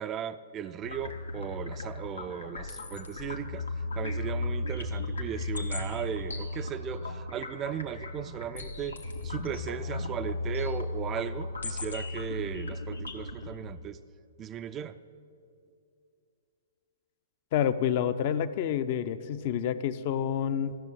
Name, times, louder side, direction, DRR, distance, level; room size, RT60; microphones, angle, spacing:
voice 1, 0.0-3.6 4.0-9.0 9.2-14.0 14.4-15.0, right 9 dB, 25° right, 12 dB, 0.4 m, -37 dB
sound 1, 0.8-13.6, left 2 dB, 85° left, 1.5 m, -35 dB
voice 2, 17.5-20.7, left 9 dB, 45° left, 12 dB, 0.6 m, -28 dB
14.0 x 6.9 x 9.8 m, 2.4 s
figure-of-eight pair, 115°, 0 cm